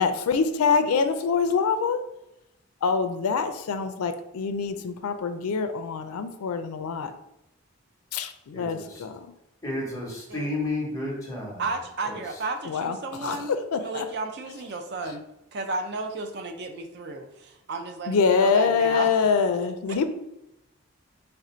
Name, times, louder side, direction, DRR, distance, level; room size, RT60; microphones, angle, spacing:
voice 1, 0.0-2.0 2.8-7.1 8.1-9.3 12.7-14.1 18.1-20.1, left 5 dB, 85° left, 9 dB, 0.4 m, -25 dB
voice 2, 8.5-9.0 9.6-11.6 12.0-12.4, left 2 dB, 15° left, -3 dB, 0.9 m, -32 dB
voice 3, 11.6-15.3 15.5-19.1, right 3 dB, 50° right, 6 dB, 0.4 m, -33 dB
3.4 x 2.5 x 4.2 m, 0.90 s
head